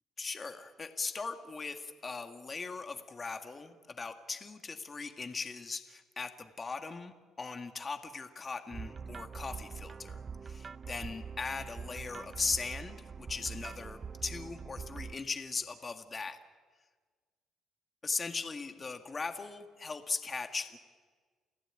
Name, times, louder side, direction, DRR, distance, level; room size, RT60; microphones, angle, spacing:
voice 1, 0.2-16.4 18.0-20.8, left 4 dB, 35° left, 6 dB, 2.0 m, -39 dB
sound 1, 8.7-15.2, right 5 dB, 40° right, 0.6 m, -44 dB
29.5 x 15.5 x 9.1 m, 1.5 s
supercardioid pair, 65°, 0 cm